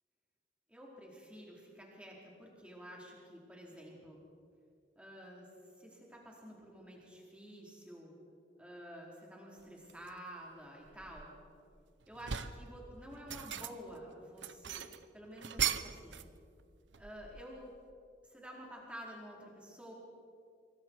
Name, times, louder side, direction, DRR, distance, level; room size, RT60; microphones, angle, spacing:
voice 1, 0.7-4.2 5.0-5.5 5.8-8.1 8.6-11.3 12.1-14.9 15.1-16.2 16.9-17.7 18.2-19.9, equal, 5° right, -3 dB, 4.5 m, -50 dB
sound 1, 9.9-10.1 10.7-11.7 12.0-12.7 13.1-14.0 14.4-16.3 16.6-17.6, right 9 dB, 80° right, 0.8 m, -39 dB
26.0 x 24.5 x 4.8 m, 2.4 s
head